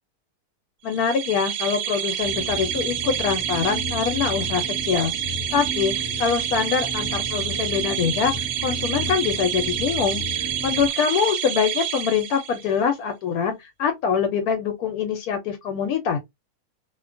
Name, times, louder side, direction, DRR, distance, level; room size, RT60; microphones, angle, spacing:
voice 1, 0.8-5.1 5.5-5.9 6.2-10.2 10.6-16.2, left 7 dB, 75° left, 1.0 m, -24 dB
sound 1, 0.9-12.7, right 11 dB, 85° right, 1.2 m, -28 dB
sound 2, 2.2-10.9, left 1 dB, 15° right, 0.7 m, -34 dB
2.7 x 2.2 x 2.4 m
omnidirectional pair, 1.7 m